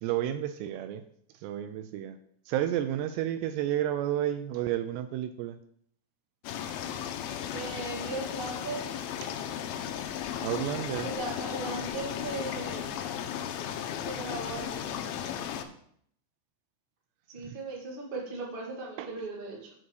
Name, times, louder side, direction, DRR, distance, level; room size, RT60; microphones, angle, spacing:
voice 1, 0.0-1.0 1.4-2.2 2.5-5.6 10.4-11.1 17.5-17.6 19.0-19.1, right 12 dB, 85° right, 10 dB, 2.5 m, -31 dB
sound 1, 6.4-15.6, left 9 dB, 85° left, 2.2 m, -35 dB
voice 2, 7.5-8.9 11.0-12.9 14.0-14.8 17.3-19.7, right 3 dB, 35° right, -3 dB, 0.8 m, -38 dB
7.6 x 5.4 x 6.3 m, 0.66 s
omnidirectional pair, 5.1 m